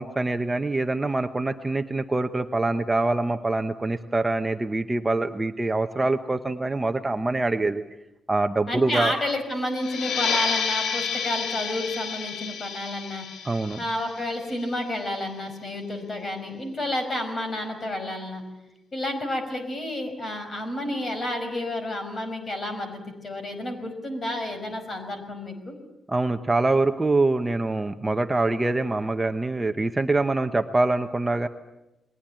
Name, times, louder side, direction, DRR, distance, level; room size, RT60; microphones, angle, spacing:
voice 1, 0.0-7.8 8.3-9.1 13.4-13.8 26.1-31.5, right 2 dB, 15° right, 6 dB, 0.9 m, -24 dB
voice 2, 8.7-13.3 13.8-18.4 18.9-25.7, left 1 dB, 30° left, 7 dB, 5.2 m, -30 dB
sound 1, 9.7-15.0, left 6 dB, 75° left, 2.4 m, -30 dB
29.5 x 21.0 x 8.9 m, 0.94 s
wide cardioid pair, 150°, 0 cm